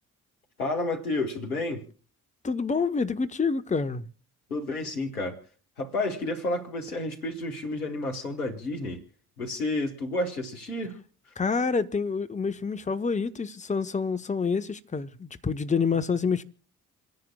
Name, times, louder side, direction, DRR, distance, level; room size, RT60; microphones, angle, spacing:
voice 1, 0.6-1.8 4.5-5.4 5.8-9.0 9.4-11.0, left 2 dB, 85° left, 1.6 m, -30 dB
voice 2, 2.4-4.1 11.4-16.4, left 5 dB, 15° left, 1.0 m, -27 dB
28.5 x 10.5 x 2.3 m
figure-of-eight pair, 45°, 43 cm